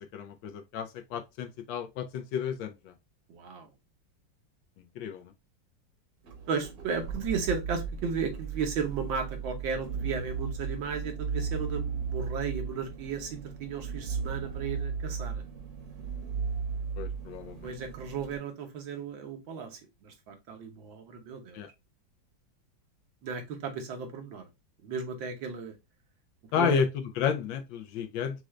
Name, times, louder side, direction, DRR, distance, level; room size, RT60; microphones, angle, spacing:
voice 1, 0.1-2.9 4.9-5.3 17.0-17.7 21.5-21.7 26.5-28.4, left 7 dB, 80° left, 1.4 m, -31 dB
voice 2, 3.3-3.7 6.5-15.4 17.6-21.6 23.2-24.5 24.8-25.8 26.6-26.8, right 5 dB, 80° right, 1.8 m, -35 dB
sound 1, 6.2-18.4, right 6 dB, 55° right, 1.4 m, -36 dB
6.1 x 2.5 x 3.2 m
omnidirectional pair, 2.1 m